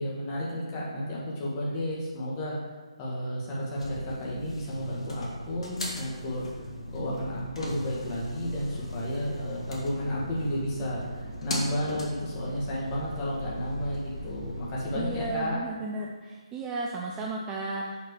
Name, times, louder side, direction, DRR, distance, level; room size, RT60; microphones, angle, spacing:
voice 1, 0.0-2.6 3.0-6.5 6.9-15.6, equal, 25° left, -5 dB, 1.6 m, -32 dB
sound 1, 3.7-15.3, equal, 65° left, 1.7 m, -38 dB
voice 2, 14.9-18.0, right 3 dB, 15° right, -2 dB, 0.4 m, -34 dB
5.6 x 4.5 x 4.8 m, 1.4 s
figure-of-eight pair, 155°, 3 cm